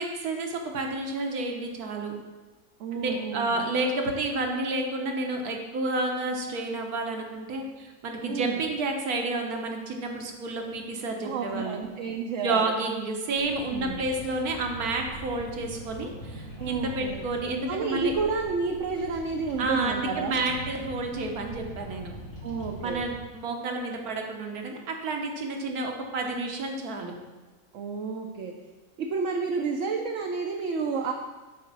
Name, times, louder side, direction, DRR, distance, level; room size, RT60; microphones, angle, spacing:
voice 1, 0.0-2.1 2.9-11.8 12.4-18.1 19.6-22.1 22.8-27.1, right 2 dB, 80° right, 2 dB, 1.5 m, -30 dB
voice 2, 2.8-3.6 8.3-8.6 11.2-12.6 13.7-14.0 16.6-17.2 17.7-20.4 22.4-23.1 27.7-28.5 29.0-31.1, right 5 dB, 65° right, 2 dB, 0.9 m, -30 dB
Bird vocalization bird call bird song, 13.4-23.2, right 1 dB, 70° left, 2.5 m, -42 dB
8.4 x 4.3 x 6.0 m, 1.2 s
omnidirectional pair, 1.6 m